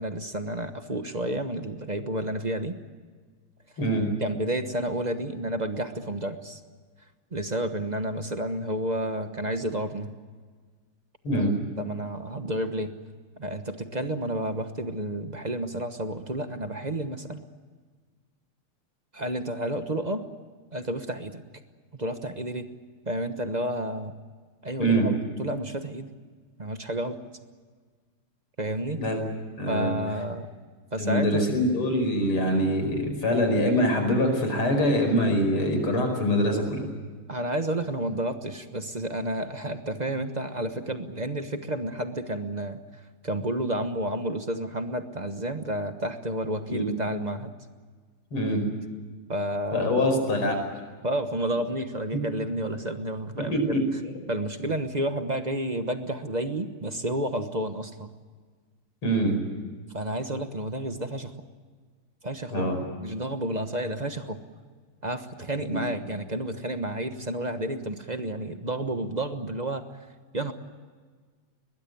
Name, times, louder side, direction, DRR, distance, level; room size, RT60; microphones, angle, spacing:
voice 1, 0.0-2.8 4.2-6.6 7.3-10.1 11.3-12.9 13.4-17.4 19.1-20.3 20.7-21.4 22.0-22.7 23.1-24.2 24.6-26.1 26.6-27.2 28.6-29.0 29.7-30.5 30.9-31.5 37.3-42.8 43.2-47.5 49.3-49.9 51.0-53.8 54.3-58.1 59.9-61.3 62.2-62.7 63.0-64.4 65.0-69.8 70.3-70.5, right 1 dB, 25° right, 8 dB, 0.9 m, -30 dB
voice 2, 29.6-29.9 31.0-36.8 46.7-46.9 48.3-48.6 49.7-50.6 53.5-53.8 59.0-59.3 62.5-62.8 65.7-65.9, equal, 75° left, 5 dB, 5.8 m, -24 dB
22.5 x 20.5 x 9.3 m, 1.5 s
omnidirectional pair, 2.4 m